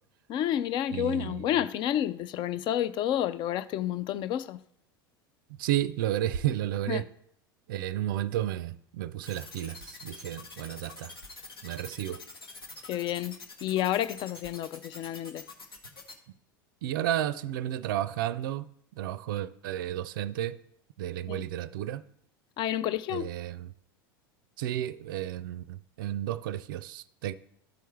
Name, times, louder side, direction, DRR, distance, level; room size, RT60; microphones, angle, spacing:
voice 1, 0.3-4.6 6.9-7.0 12.9-15.4 21.3-21.4 22.6-23.3, left 11 dB, 40° left, 0.4 m, -30 dB
voice 2, 0.9-1.5 5.6-7.0 7.7-11.1 11.6-12.2 16.8-18.7 18.9-20.6 21.0-22.0 23.1-23.7 24.6-27.3, right 12 dB, 65° right, 0.4 m, -32 dB
sound 1, 9.2-16.1, left 3 dB, 80° left, 1.2 m, -45 dB
13.0 x 4.5 x 3.1 m
figure-of-eight pair, 80°, 12 cm